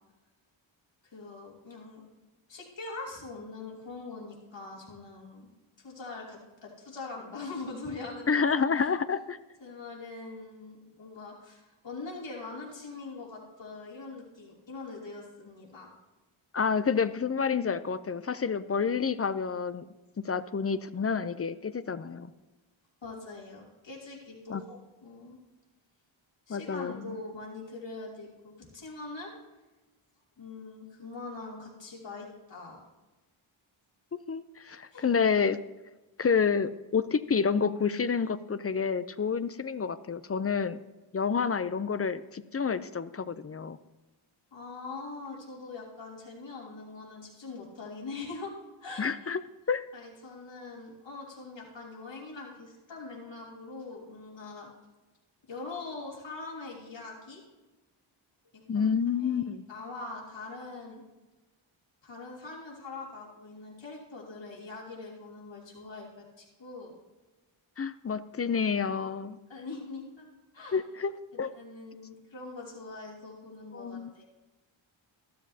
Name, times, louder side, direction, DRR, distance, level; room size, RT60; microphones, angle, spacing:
voice 1, 1.0-2.1 2.5-5.5 5.8-8.4 8.7-8.9 9.6-15.9 23.0-25.4 26.5-29.3 30.4-32.8 34.9-35.0 44.5-48.5 48.8-49.3 49.9-54.7 55.5-57.4 58.5-58.9 59.2-59.4 59.7-61.0 62.0-67.0 69.5-70.3 70.5-70.8 71.5-74.2, left 3 dB, 60° left, -3 dB, 3.0 m, -43 dB
voice 2, 8.3-9.4 16.5-19.9 20.2-22.3 24.5-24.6 26.5-27.1 34.3-35.6 36.2-40.8 41.1-43.8 49.0-49.4 49.7-49.9 58.7-59.6 67.8-69.4 70.7-71.1 71.4-71.5 73.7-74.2, left 6 dB, 30° left, 14 dB, 0.5 m, -29 dB
13.0 x 12.0 x 2.8 m, 1.2 s
cardioid pair, 65°, 49 cm